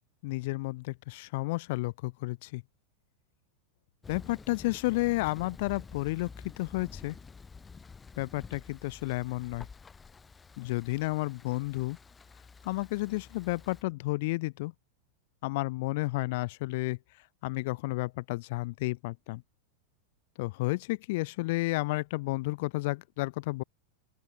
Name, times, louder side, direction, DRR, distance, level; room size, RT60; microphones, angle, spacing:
voice 1, 0.2-2.6 4.1-6.3 6.6-7.2 8.2-9.7 10.6-12.0 12.6-14.7 15.4-17.0 17.4-19.4 20.4-23.6, left 22 dB, 50° left, 0.9 m, -31 dB
Thunder, 4.0-13.8, left 5 dB, 15° left, 1.7 m, -49 dB
open air
figure-of-eight pair, 90°, 0 cm